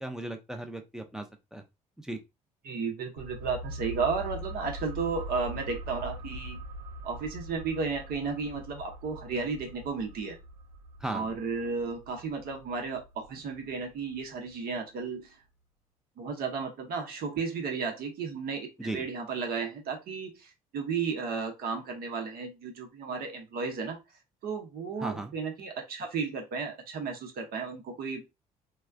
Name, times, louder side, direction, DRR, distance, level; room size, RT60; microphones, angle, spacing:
voice 1, 0.0-1.6 2.0-2.2 11.0-11.3 18.8-19.0 25.0-25.3, right 1 dB, 5° right, 6 dB, 0.6 m, -37 dB
voice 2, 2.6-6.6 7.0-10.4 11.1-15.4 16.2-24.0 24.4-28.2, right 5 dB, 55° right, 4 dB, 0.9 m, -33 dB
sound 1, 3.2-14.5 14.8-14.9, equal, 90° right, 0.4 m, -43 dB
3.2 x 2.2 x 2.3 m, 0.24 s
hypercardioid pair, 55°, 18 cm